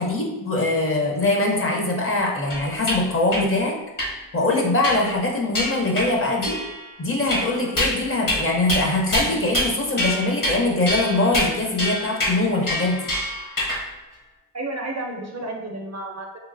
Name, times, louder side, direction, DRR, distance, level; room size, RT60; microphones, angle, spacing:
voice 1, 0.0-3.7 4.3-6.6 7.0-13.0, left 2 dB, 30° left, -1 dB, 0.6 m, -22 dB
sound 1, 2.5-3.0 3.3-3.4 4.0-4.1 4.8-5.2 5.6-6.1 6.4-6.8 7.3-8.0 8.3-8.4 8.7-8.8 9.1-9.7 10.0-10.6 10.9-13.8, left 1 dB, 45° left, 0.9 m, -25 dB
voice 2, 14.5-16.4, right 2 dB, 40° right, 1 dB, 0.4 m, -31 dB
3.0 x 2.7 x 2.5 m, 1.0 s
wide cardioid pair, 100°, 43 cm